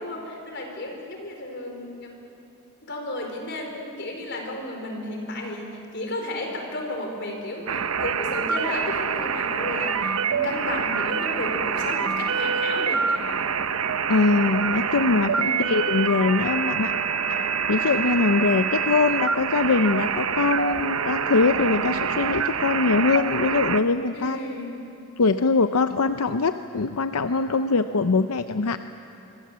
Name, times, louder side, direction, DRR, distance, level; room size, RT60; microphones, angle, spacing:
voice 1, 0.0-2.1 2.9-13.2 15.3-15.7 24.1-24.7, left 1 dB, 50° left, 2 dB, 4.6 m, -33 dB
sound 1, 7.7-23.8, right 6 dB, 75° right, 0.9 m, -26 dB
voice 2, 14.1-17.0 17.3-24.4 25.2-28.8, left 3 dB, 85° left, 9 dB, 0.7 m, -22 dB
26.0 x 24.5 x 7.6 m, 2.9 s
head